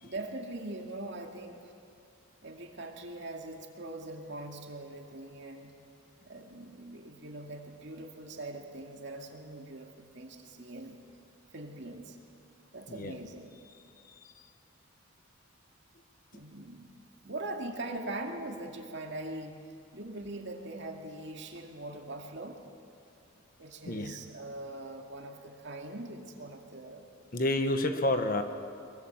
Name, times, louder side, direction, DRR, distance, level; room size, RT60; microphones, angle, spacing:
voice 1, 0.0-1.7 2.4-5.7 6.2-11.0 11.5-12.2 12.7-13.6 16.3-17.0 17.2-19.6 19.9-22.6 23.6-27.1, right 2 dB, 55° right, 2 dB, 2.4 m, -42 dB
voice 2, 23.9-24.2 27.3-28.4, left 1 dB, 45° left, 7 dB, 1.4 m, -30 dB
22.5 x 22.5 x 7.4 m, 2.4 s
head